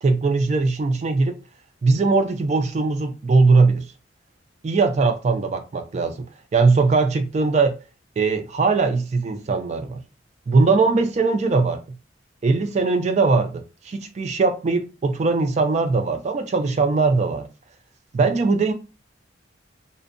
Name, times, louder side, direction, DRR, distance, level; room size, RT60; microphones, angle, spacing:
voice 1, 0.0-1.4 1.8-3.9 4.6-6.3 6.5-7.8 8.2-10.0 10.5-11.8 12.4-17.5 18.1-18.7, right 3 dB, 35° right, 0.3 m, -20 dB
2.5 x 2.1 x 2.5 m
head